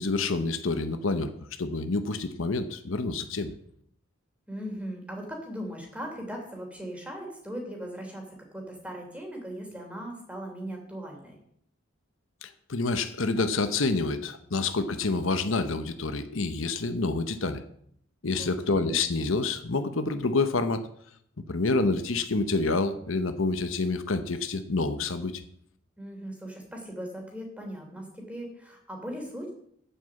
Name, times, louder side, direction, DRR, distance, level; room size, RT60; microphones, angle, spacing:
voice 1, 0.0-1.3 1.6-3.5 12.4-17.6 18.2-20.8 21.5-25.3, left 3 dB, 75° left, 9 dB, 1.0 m, -28 dB
voice 2, 4.5-11.4 18.4-18.9 26.0-29.5, equal, 5° right, 1 dB, 3.2 m, -39 dB
9.5 x 8.3 x 7.7 m, 0.69 s
head